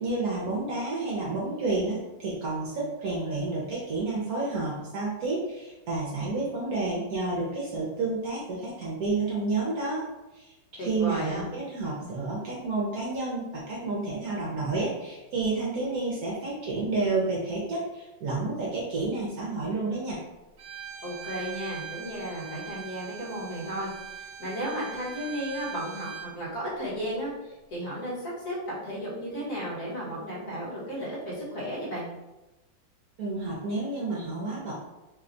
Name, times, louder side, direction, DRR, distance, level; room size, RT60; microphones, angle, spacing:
voice 1, 0.0-10.0 10.3-20.2 33.2-34.7, right 3 dB, 60° right, -5 dB, 1.0 m, -30 dB
voice 2, 10.8-11.4 21.0-32.1, equal, 55° left, -7 dB, 1.6 m, -34 dB
Bowed string instrument, 20.6-26.3, right 8 dB, 85° right, 0.5 m, -41 dB
3.4 x 2.2 x 3.8 m, 1.0 s
omnidirectional pair, 2.1 m